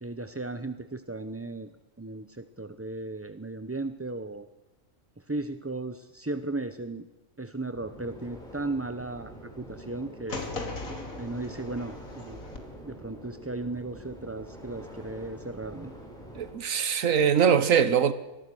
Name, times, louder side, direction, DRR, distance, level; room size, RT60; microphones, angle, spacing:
voice 1, 0.0-4.5 5.2-7.1 7.4-10.4 11.2-12.4 12.8-15.9, right 2 dB, 15° right, 0.6 m, -36 dB
sound 1, 7.7-16.5, equal, 5° left, 6.9 m, -46 dB
sound 2, 10.3-12.6, left 3 dB, 85° left, 3.2 m, -38 dB
voice 2, 16.3-18.1, right 7 dB, 75° right, 1.4 m, -22 dB
25.0 x 19.5 x 6.3 m
omnidirectional pair, 1.4 m